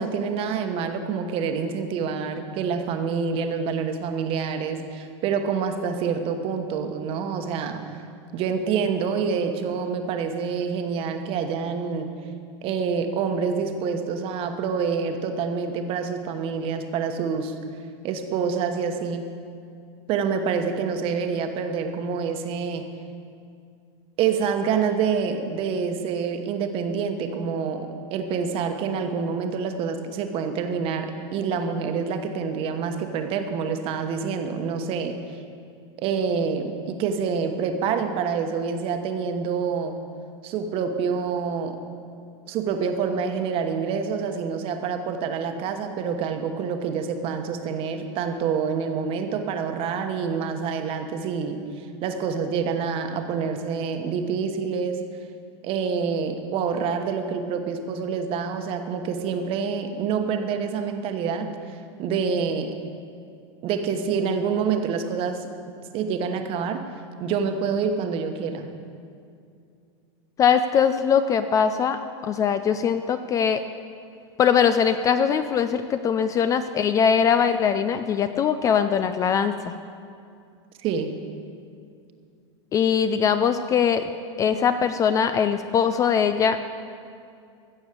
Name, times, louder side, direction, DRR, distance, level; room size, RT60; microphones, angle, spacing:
voice 1, 0.0-7.8 8.3-12.1 12.6-17.5 18.0-19.3 20.1-22.9 24.2-35.2 36.0-40.0 40.4-41.8 42.5-51.7 52.0-55.0 55.6-62.8 63.6-65.5 65.9-66.8 67.2-68.7 80.8-81.1, right 6 dB, 40° right, 6 dB, 1.1 m, -27 dB
voice 2, 70.4-73.6 74.4-79.7 82.7-84.0 84.4-86.6, left 7 dB, 20° left, 11 dB, 0.4 m, -21 dB
15.5 x 7.0 x 6.8 m, 2.4 s
supercardioid pair, 145°, 15 cm